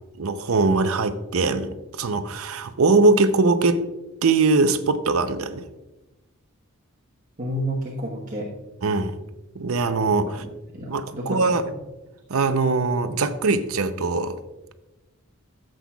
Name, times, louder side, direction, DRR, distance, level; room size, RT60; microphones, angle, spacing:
voice 1, 0.2-3.8 4.2-5.7 8.8-9.2 9.5-10.4 10.9-11.6 12.3-14.4, right 3 dB, 70° right, 10 dB, 0.6 m, -21 dB
voice 2, 7.4-8.5 10.3-10.4 10.7-11.8, equal, 35° right, -4 dB, 1.2 m, -30 dB
14.0 x 7.7 x 2.3 m, 1.0 s
head